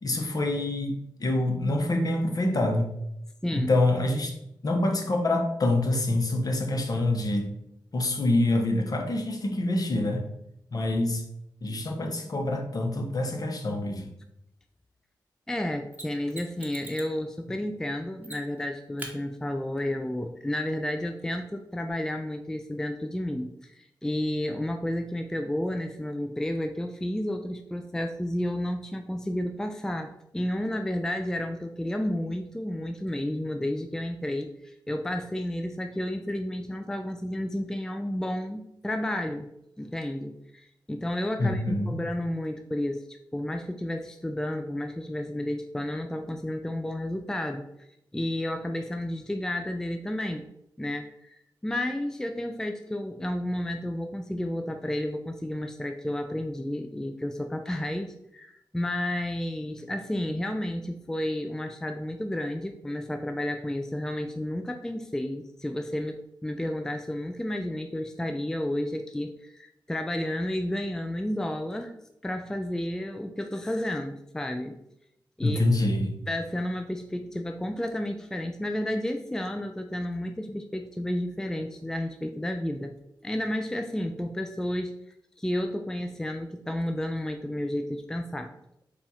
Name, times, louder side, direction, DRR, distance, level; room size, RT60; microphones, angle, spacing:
voice 1, 0.0-2.9 3.5-4.4 4.6-7.5 7.9-10.2 10.7-11.2 11.6-14.1 41.4-42.0 75.4-76.2, left 2 dB, 50° left, 3 dB, 0.8 m, -26 dB
voice 2, 15.5-39.5 39.8-47.7 48.1-50.5 50.8-51.4 51.6-72.0 72.2-74.8 75.4-75.7 76.3-83.0 83.2-85.0 85.4-88.5, left 1 dB, 5° left, 6 dB, 0.3 m, -31 dB
Mechanisms, 15.9-17.2 18.2-18.6 19.0-19.1 21.9-22.0, right 1 dB, 20° right, 0.9 m, -42 dB
4.1 x 2.4 x 4.2 m, 0.80 s
cardioid pair, 65°, 8 cm